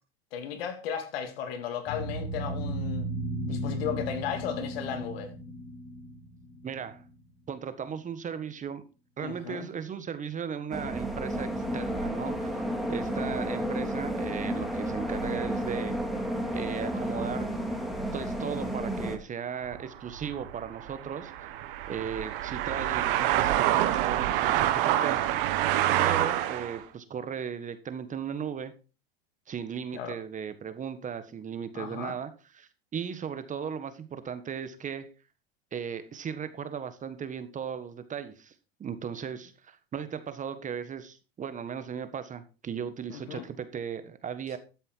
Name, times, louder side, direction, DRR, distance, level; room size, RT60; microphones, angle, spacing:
voice 1, 0.3-3.1 3.5-5.3 9.2-9.7 29.9-30.2 31.7-32.2 43.1-43.4, left 8 dB, 75° left, 3.0 m, -35 dB
sound 1, 1.9-7.0, right 1 dB, 40° left, 5.3 m, -35 dB
voice 2, 6.6-7.0 7.5-8.8 9.2-16.0 16.5-17.5 18.1-21.5 21.9-25.2 26.0-28.7 29.5-35.1 35.7-38.5 38.8-44.6, right 7 dB, 25° right, 1.5 m, -37 dB
sound 2, 10.7-19.2, equal, ahead, 2.6 m, -32 dB
sound 3, 19.6-26.8, right 13 dB, 65° right, 1.8 m, -27 dB
13.0 x 7.6 x 4.7 m
supercardioid pair, 120°, 30 cm